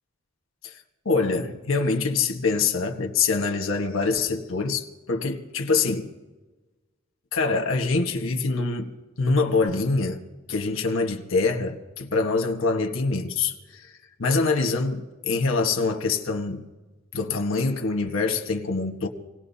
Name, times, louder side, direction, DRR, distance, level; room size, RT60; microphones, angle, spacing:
voice 1, 1.0-6.1 7.3-8.9 9.2-10.2 10.5-13.5 14.2-16.7 17.1-19.1, left 4 dB, 80° left, 1.4 m, -24 dB
27.0 x 18.5 x 2.8 m
head